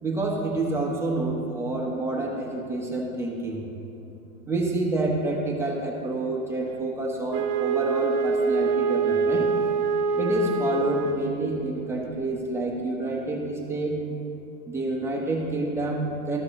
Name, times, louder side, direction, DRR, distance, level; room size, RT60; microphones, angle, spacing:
voice 1, 0.0-3.6 4.5-9.5 10.2-14.0 14.7-16.4, right 2 dB, 5° right, -2 dB, 0.8 m, -28 dB
Wind instrument woodwind instrument, 7.3-11.5, right 5 dB, 45° right, 0.6 m, -25 dB
14.0 x 4.8 x 3.6 m, 2.9 s
supercardioid pair, 155°, 41 cm